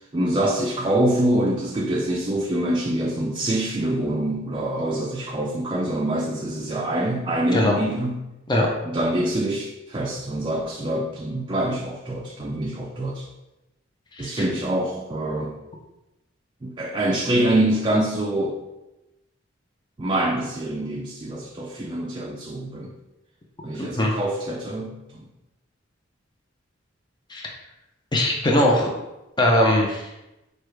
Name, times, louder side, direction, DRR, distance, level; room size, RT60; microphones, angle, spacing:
voice 1, 0.1-8.2 8.8-13.3 14.2-15.6 16.6-18.6 20.0-22.9 23.6-25.3, right 1 dB, 25° right, -2 dB, 0.4 m, -25 dB
voice 2, 23.8-24.1 27.3-27.5 28.1-28.9 29.4-30.1, left 1 dB, 25° left, -1 dB, 0.6 m, -20 dB
4.7 x 2.3 x 4.5 m, 0.96 s
head